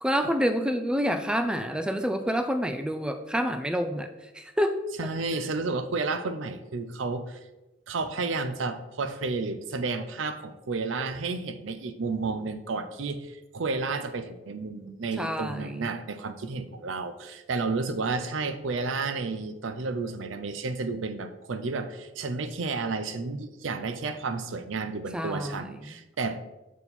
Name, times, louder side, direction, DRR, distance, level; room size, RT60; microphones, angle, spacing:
voice 1, 0.0-4.1 4.3-4.8 15.2-15.9 25.1-26.0, equal, 5° right, 8 dB, 0.3 m, -28 dB
voice 2, 5.0-7.4 7.9-26.4, right 3 dB, 80° right, 10 dB, 0.6 m, -31 dB
7.1 x 4.4 x 4.1 m, 1.0 s
head